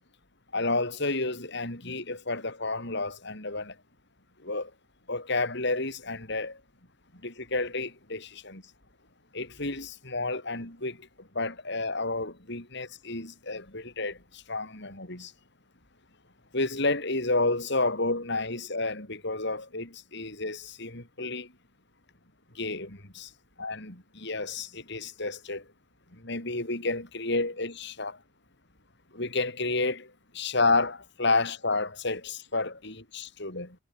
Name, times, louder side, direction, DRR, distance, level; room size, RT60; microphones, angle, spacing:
voice 1, 0.5-3.8 4.4-4.7 5.1-6.6 7.2-8.6 9.3-15.3 16.5-21.5 22.5-23.3 23.6-25.6 26.1-28.2 29.1-33.8, left 3 dB, 60° left, 7.2 m, -31 dB
head